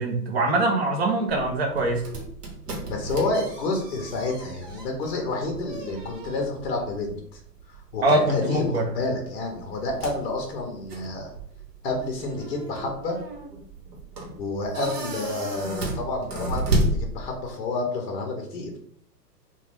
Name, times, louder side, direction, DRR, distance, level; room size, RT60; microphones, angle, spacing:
voice 1, 0.0-2.0 8.0-8.8, right 2 dB, 40° right, 2 dB, 0.5 m, -23 dB
sound 1, 1.3-17.7, right 1 dB, 70° right, 1.0 m, -33 dB
voice 2, 2.9-7.4 7.7-11.3 11.8-13.2 14.4-18.7, left 2 dB, 40° left, 2 dB, 0.6 m, -29 dB
2.4 x 2.3 x 3.1 m, 0.64 s
hypercardioid pair, 130°, 50 cm